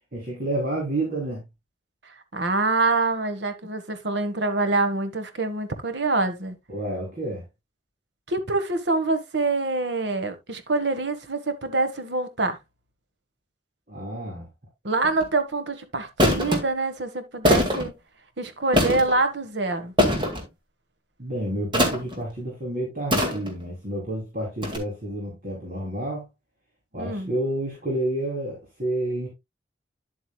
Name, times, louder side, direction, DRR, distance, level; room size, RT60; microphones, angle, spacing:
voice 1, 0.1-1.4 6.7-7.4 13.9-14.5 21.2-26.3 26.9-29.3, right 1 dB, 50° right, 3.3 m, -29 dB
voice 2, 2.3-6.5 8.3-12.6 14.8-18.0 18.4-19.9 27.0-27.3, right 3 dB, 75° right, 1.4 m, -25 dB
sound 1, 15.0-15.2 16.2-16.6 17.4-17.9 18.7-19.2 20.0-20.4 21.7-22.1 23.1-23.6 24.6-24.8, left 1 dB, 25° right, 2.1 m, -21 dB
10.5 x 7.8 x 2.3 m
head